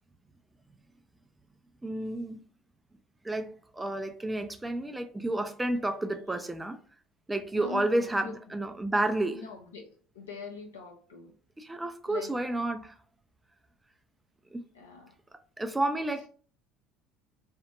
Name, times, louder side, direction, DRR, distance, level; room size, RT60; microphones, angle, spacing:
voice 1, 1.8-2.4 3.2-6.8 7.3-9.4 11.6-13.0 14.5-14.6 15.6-16.3, right 1 dB, 10° right, 0.3 m, -31 dB
voice 2, 7.5-8.4 9.3-11.3 12.1-12.3 14.7-15.1, left 4 dB, 80° left, 0.7 m, -43 dB
2.6 x 2.1 x 2.3 m
figure-of-eight pair, 65°, 0 cm